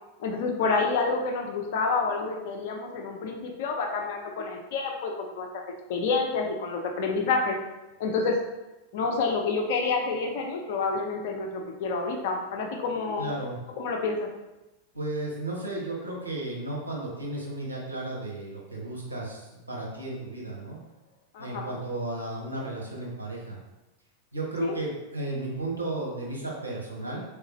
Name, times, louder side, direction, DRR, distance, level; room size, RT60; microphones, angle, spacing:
voice 1, 0.2-5.5 5.9-7.6 8.0-8.4 8.9-13.3 13.8-14.3 21.3-21.6 24.6-24.8, left 4 dB, 50° left, 2 dB, 0.5 m, -28 dB
voice 2, 13.2-13.6 14.9-20.8 21.4-23.6 24.3-27.2, right 2 dB, 85° right, -4 dB, 1.0 m, -34 dB
3.7 x 3.6 x 3.0 m, 1.0 s
figure-of-eight pair, 90°, 0 cm